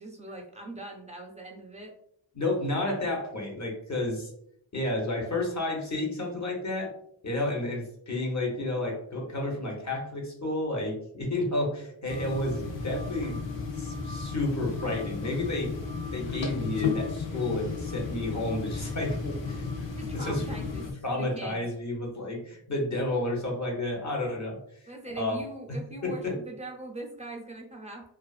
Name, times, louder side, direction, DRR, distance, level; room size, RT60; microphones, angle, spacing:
voice 1, 0.0-1.9 19.9-21.6 24.9-28.1, right 2 dB, 15° right, 0 dB, 0.6 m, -41 dB
voice 2, 2.3-4.3 4.7-6.9 7.2-13.5 13.7-15.8 16.1-19.7 20.1-20.4 20.8-24.6 25.1-25.4 26.0-26.3, left 2 dB, 40° left, -1 dB, 0.9 m, -31 dB
sound 1, 12.1-20.9, left 4 dB, 80° left, 0.6 m, -34 dB
2.4 x 2.4 x 2.3 m, 0.70 s
wide cardioid pair, 60°, 44 cm